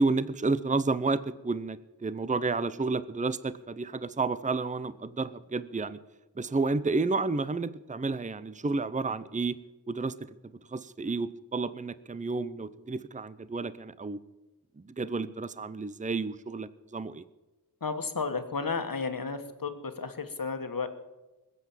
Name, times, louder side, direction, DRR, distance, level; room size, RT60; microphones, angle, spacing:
voice 1, 0.0-6.0 6.4-9.6 9.9-10.1 10.7-14.2 14.8-17.2, right 3 dB, 20° right, 15 dB, 0.6 m, -31 dB
voice 2, 17.8-20.9, left 4 dB, 55° left, 8 dB, 1.6 m, -33 dB
20.5 x 8.3 x 7.3 m, 1.1 s
wide cardioid pair, 80°, 41 cm